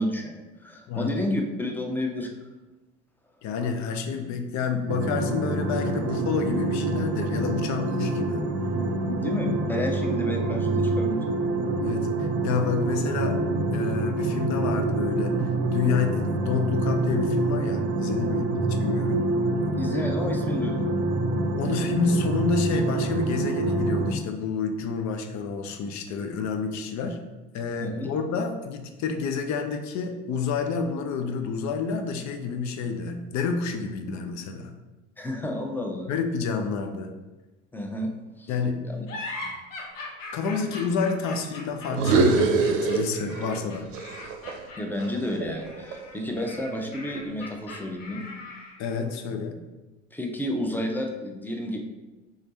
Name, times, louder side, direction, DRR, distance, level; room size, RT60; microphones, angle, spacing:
voice 1, 0.0-2.3 9.1-11.2 19.8-20.8 27.8-28.1 35.2-36.1 37.7-38.1 38.4-38.5 38.8-39.1 39.4-39.5 44.8-48.2 50.1-51.8, left 1 dB, 5° left, 2 dB, 0.7 m, -31 dB
voice 2, 0.9-1.2 3.4-8.5 11.8-13.4 13.7-19.3 21.6-27.2 27.5-34.7 36.1-37.1 38.5-38.8 40.3-43.9 48.8-49.6, left 5 dB, 50° left, 6 dB, 0.7 m, -29 dB
sound 1, 4.9-24.1, right 2 dB, 40° right, 0.6 m, -26 dB
sound 2, 39.1-48.9, left 2 dB, 85° left, 1.0 m, -40 dB
sound 3, 41.9-43.6 43.9-46.2, right 4 dB, 75° right, 0.7 m, -25 dB
3.8 x 3.3 x 4.1 m, 1.1 s
hypercardioid pair, 65°, 38 cm